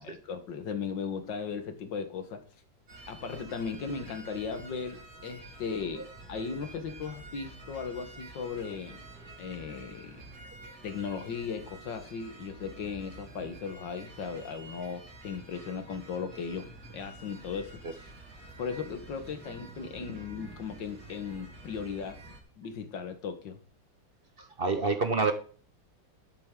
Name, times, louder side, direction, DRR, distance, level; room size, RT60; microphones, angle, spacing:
voice 1, 0.0-2.4 3.1-9.0 9.4-10.2 10.8-18.1 18.6-22.2 22.6-23.6, left 6 dB, 70° left, 8 dB, 2.0 m, -37 dB
sound 1, 2.9-22.4, right 2 dB, 85° right, 3.5 m, -49 dB
voice 2, 24.4-25.3, right 4 dB, 40° right, 8 dB, 1.0 m, -27 dB
12.5 x 8.4 x 3.8 m, 0.40 s
omnidirectional pair, 2.1 m